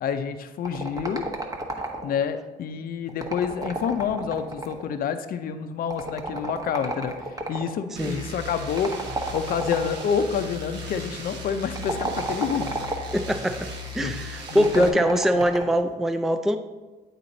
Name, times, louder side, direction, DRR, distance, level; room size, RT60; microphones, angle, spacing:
voice 1, 0.0-1.3 2.0-7.1 7.5-8.9 9.3-12.7 14.0-14.2 14.5-15.4, left 7 dB, 55° left, 9 dB, 0.5 m, -28 dB
sound 1, 0.6-2.3 3.1-4.9 5.9-7.7 8.8-10.1 11.6-13.2 14.5-15.8, right 2 dB, 20° right, 1.1 m, -32 dB
sound 2, 8.0-14.9, left 1 dB, 75° right, 1.2 m, -37 dB
voice 2, 13.1-13.7 13.9-16.6, equal, ahead, 7 dB, 0.4 m, -23 dB
8.4 x 4.0 x 3.9 m, 1.2 s
supercardioid pair, 70°, 18 cm